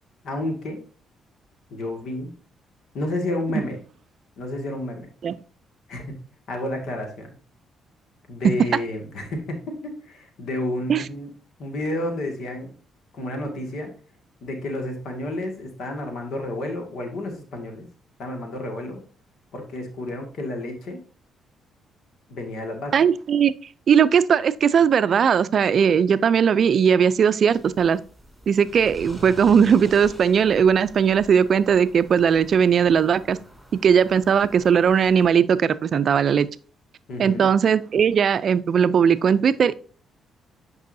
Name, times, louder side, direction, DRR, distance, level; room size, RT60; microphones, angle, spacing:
voice 1, 0.2-0.8 1.7-2.3 2.9-3.8 4.4-5.1 5.9-6.0 6.5-7.3 8.3-11.3 11.6-12.7 13.1-13.9 14.4-17.9 18.2-19.0 19.5-21.0 22.3-22.9 37.1-37.5, left 1 dB, 70° left, 3 dB, 2.0 m, -30 dB
voice 2, 22.9-23.5 23.9-28.0 28.5-33.4 33.8-36.5 37.2-39.7, right 7 dB, 55° right, 15 dB, 0.4 m, -18 dB
sound 1, 27.5-35.3, equal, 5° right, 3.7 m, -45 dB
9.3 x 5.4 x 2.7 m, 0.41 s
cardioid pair, 90°, 0 cm